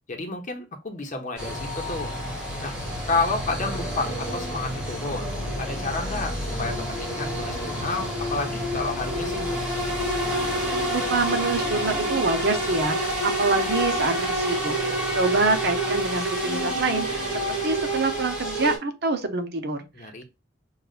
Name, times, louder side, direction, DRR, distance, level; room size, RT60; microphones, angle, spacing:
voice 1, 0.1-2.1 2.6-2.7 3.1-5.3 5.6-9.6 19.9-20.2, left 3 dB, 40° left, 0.9 m, -30 dB
sound 1, 1.4-18.8, right 1 dB, 5° right, 1.7 m, -28 dB
voice 2, 10.9-14.8 15.1-17.2 17.6-20.2, right 3 dB, 60° right, 0.8 m, -26 dB
6.4 x 2.4 x 2.4 m
head